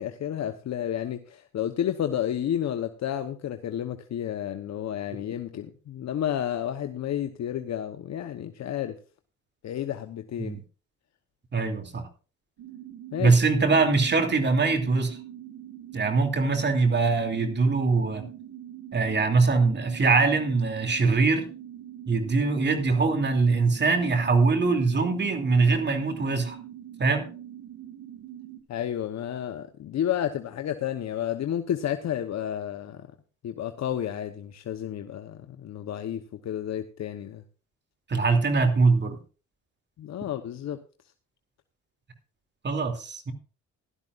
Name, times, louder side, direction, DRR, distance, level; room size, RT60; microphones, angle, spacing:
voice 1, 0.0-9.0 9.6-10.6 13.1-13.4 28.7-33.1 33.4-37.4 40.0-40.8, left 10 dB, 60° left, 7 dB, 1.0 m, -31 dB
voice 2, 11.5-12.1 13.2-15.2 15.9-18.2 18.9-21.5 22.1-26.6 27.0-27.3 38.1-39.2 42.6-43.3, right 4 dB, 35° right, 6 dB, 2.9 m, -23 dB
High Pitched Windy Drone, 12.6-28.6, right 11 dB, 80° right, 2.0 m, -43 dB
16.5 x 12.0 x 2.5 m, 0.35 s
cardioid pair, 90°, 30 cm